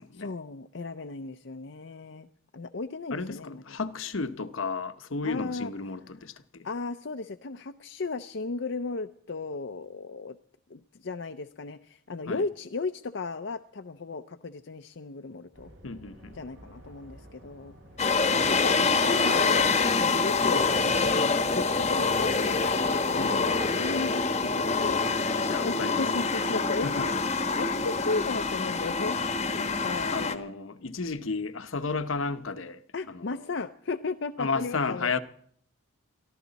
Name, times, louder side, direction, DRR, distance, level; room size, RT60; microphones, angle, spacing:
voice 1, 0.2-2.3 2.5-3.6 5.2-5.7 6.6-10.4 10.7-15.7 16.3-17.7 18.2-19.7 20.0-25.0 25.4-27.0 27.6-30.3 32.9-35.2, left 3 dB, 60° left, 0.6 m, -35 dB
voice 2, 3.1-6.7 12.3-12.4 15.8-16.4 23.2-23.5 25.5-26.0 26.8-27.1 30.1-32.8 33.1-33.5 34.4-35.2, left 4 dB, 75° left, 1.0 m, -33 dB
sound 1, 15.5-24.1, equal, 65° right, 6.7 m, -51 dB
sound 2, 18.0-30.4, left 4 dB, 30° left, 1.0 m, -26 dB
23.0 x 14.5 x 4.1 m
head